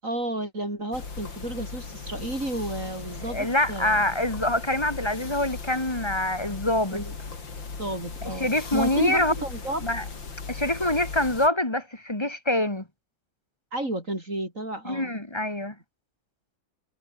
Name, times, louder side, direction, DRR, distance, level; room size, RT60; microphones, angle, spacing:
voice 1, 0.0-4.1 6.9-7.1 7.8-9.9 13.7-15.1, right 1 dB, 40° right, 7.5 m, -32 dB
sound 1, 0.9-11.5, left 4 dB, 70° left, 4.1 m, -38 dB
voice 2, 3.3-7.0 8.2-9.3 9.8-10.0 10.5-12.8 14.8-15.7, left 1 dB, 15° left, 2.2 m, -25 dB
omnidirectional pair, 2.2 m